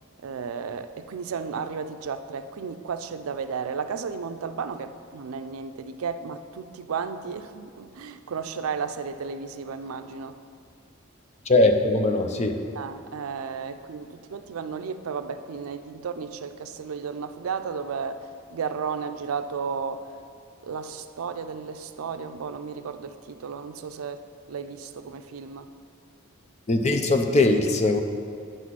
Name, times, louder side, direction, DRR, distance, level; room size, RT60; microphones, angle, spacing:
voice 1, 0.2-10.4 12.8-18.2 18.5-20.0 20.6-24.2 24.5-25.7, right 6 dB, 90° right, 10 dB, 0.4 m, -33 dB
voice 2, 11.5-12.6 26.7-28.0, left 2 dB, 30° left, 6 dB, 0.5 m, -21 dB
9.1 x 4.1 x 6.1 m, 2.4 s
head